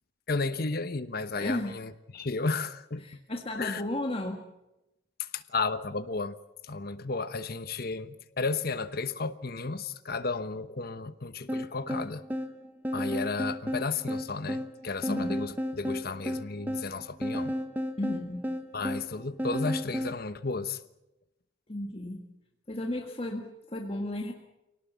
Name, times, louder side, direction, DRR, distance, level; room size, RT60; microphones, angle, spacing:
voice 1, 0.3-3.2 3.5-3.8 5.2-6.3 6.6-12.2 12.9-17.6 18.7-20.8, left 4 dB, 55° left, 1.1 m, -33 dB
voice 2, 1.4-1.8 3.0-4.4 15.1-15.4 18.0-18.5 21.7-22.3 22.7-24.3, left 1 dB, 30° left, 1.8 m, -34 dB
sound 1, 11.5-20.2, equal, 10° right, 1.1 m, -33 dB
25.0 x 18.0 x 8.3 m
head